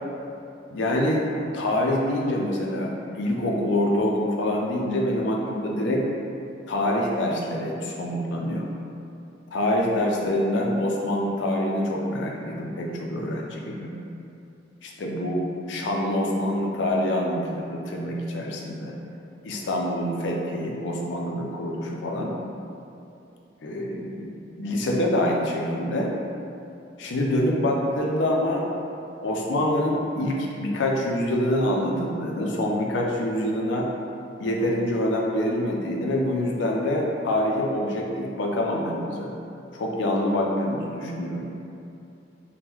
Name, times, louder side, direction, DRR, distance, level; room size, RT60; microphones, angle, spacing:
voice 1, 0.7-1.2 1.5-6.0 6.7-8.7 9.5-13.9 14.8-19.0 19.4-22.3 23.6-24.3 24.6-26.1 27.0-28.6 29.2-33.9 34.4-39.3 39.7-41.4, left 1 dB, 70° left, -1 dB, 0.4 m, -26 dB
3.5 x 2.1 x 2.9 m, 2.7 s
head